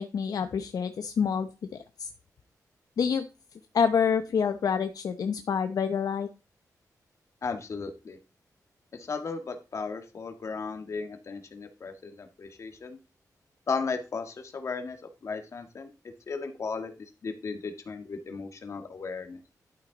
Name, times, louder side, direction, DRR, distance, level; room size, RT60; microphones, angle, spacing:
voice 1, 0.0-1.5 2.0-2.1 3.0-3.3 3.7-6.3, left 6 dB, 70° left, 8 dB, 0.7 m, -27 dB
voice 2, 7.4-8.2 8.9-13.0 13.7-15.0 15.2-15.9 16.3-16.9 17.2-19.4, left 4 dB, 50° left, 6 dB, 1.6 m, -35 dB
12.0 x 6.1 x 3.9 m, 0.31 s
wide cardioid pair, 145°, 7 cm